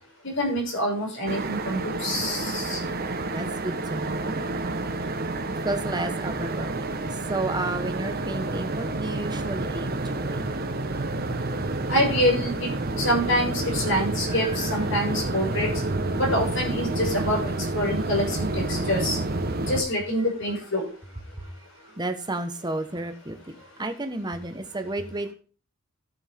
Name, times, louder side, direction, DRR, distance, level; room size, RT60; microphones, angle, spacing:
voice 1, 0.4-2.8 11.9-12.7 13.0-15.7 16.2-19.2 19.7-20.9, equal, 60° left, -1 dB, 5.8 m, -26 dB
sound 1, 1.3-19.8, right 2 dB, 45° right, 1.1 m, -29 dB
voice 2, 3.3-4.4 5.6-10.5 14.3-14.8 21.4-21.5 22.0-25.3, right 2 dB, 20° right, 7 dB, 1.2 m, -32 dB
14.5 x 6.3 x 3.6 m, 0.37 s
head